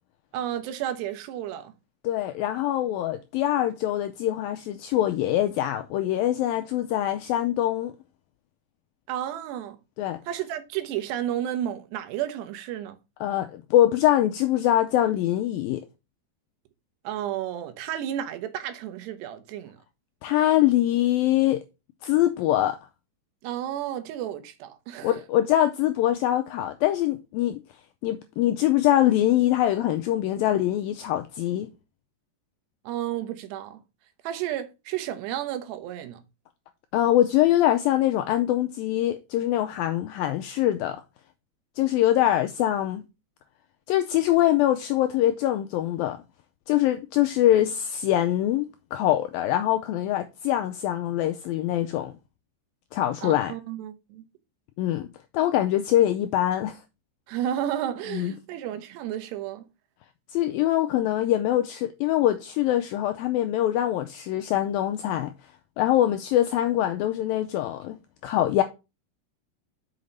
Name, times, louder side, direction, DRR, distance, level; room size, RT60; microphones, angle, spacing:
voice 1, 0.3-1.7 9.1-9.8 10.3-13.0 17.0-19.8 23.4-25.1 32.9-33.8 34.2-36.2 53.2-54.2 57.3-59.6, right 11 dB, 85° right, 3.2 m, -32 dB
voice 2, 2.0-7.9 10.0-10.2 13.2-15.8 20.2-21.6 22.0-22.8 25.0-27.6 28.0-31.7 36.9-41.0 41.8-43.0 43.9-46.2 46.7-52.1 52.9-53.5 54.8-55.1 55.3-56.8 58.1-58.3 60.3-65.3 65.8-68.0 68.2-68.6, left 13 dB, 90° left, 2.1 m, -23 dB
6.4 x 5.9 x 5.4 m
omnidirectional pair, 4.8 m